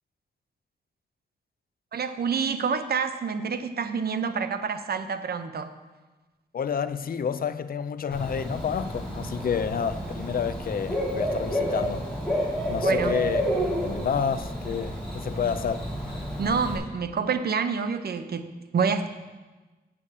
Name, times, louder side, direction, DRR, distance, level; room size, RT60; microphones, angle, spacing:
voice 1, 1.9-5.7 12.8-13.1 16.4-19.1, right 5 dB, 65° right, 0.7 m, -28 dB
voice 2, 6.5-12.1 12.7-15.9, left 7 dB, 60° left, 0.5 m, -29 dB
Bird / Cricket, 8.1-16.7, equal, 5° left, 3.2 m, -30 dB
8.5 x 7.0 x 6.6 m
wide cardioid pair, 125°, 17 cm